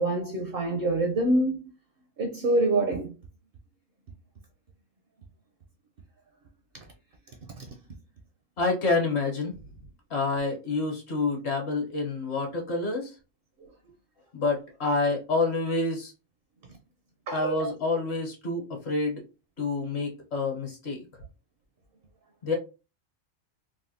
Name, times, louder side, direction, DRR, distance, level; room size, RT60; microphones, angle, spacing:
voice 1, 0.0-1.6 2.2-3.1 7.6-7.7 17.3-17.7, right 2 dB, 60° right, 0.6 m, -26 dB
voice 2, 8.6-9.5 10.1-13.1 14.3-16.1 17.3-19.2 19.6-21.0 22.4-22.6, left 3 dB, 55° left, 1.2 m, -28 dB
3.3 x 2.2 x 2.7 m
omnidirectional pair, 1.4 m